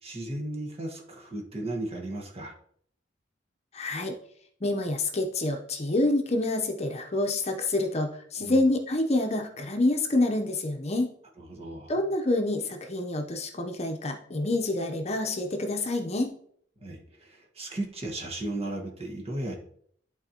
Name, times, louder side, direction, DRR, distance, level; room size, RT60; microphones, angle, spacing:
voice 1, 0.0-2.5 8.4-8.6 11.4-11.9 16.8-19.6, right 1 dB, 35° right, 1 dB, 1.4 m, -35 dB
voice 2, 3.7-4.1 4.6-11.1 11.9-16.3, left 2 dB, 35° left, 4 dB, 0.8 m, -27 dB
11.0 x 4.1 x 2.9 m, 0.62 s
head